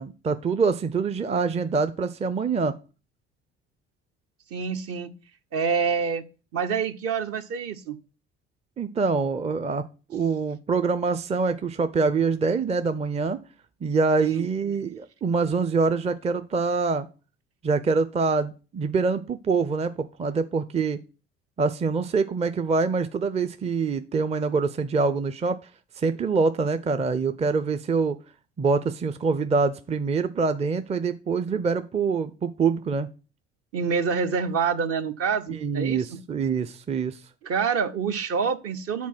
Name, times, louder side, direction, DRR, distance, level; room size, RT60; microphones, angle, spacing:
voice 1, 0.0-2.7 8.8-9.8 10.1-13.4 13.8-17.1 17.6-21.0 21.6-25.6 26.0-28.2 28.6-33.1 35.5-37.2, right 4 dB, 20° right, 0.5 m, -25 dB
voice 2, 4.5-5.1 5.5-6.2 6.5-8.0 14.2-14.5 33.7-36.2 37.4-39.1, right 6 dB, 50° right, 0.9 m, -27 dB
7.3 x 4.2 x 6.0 m
hypercardioid pair, 60°, 31 cm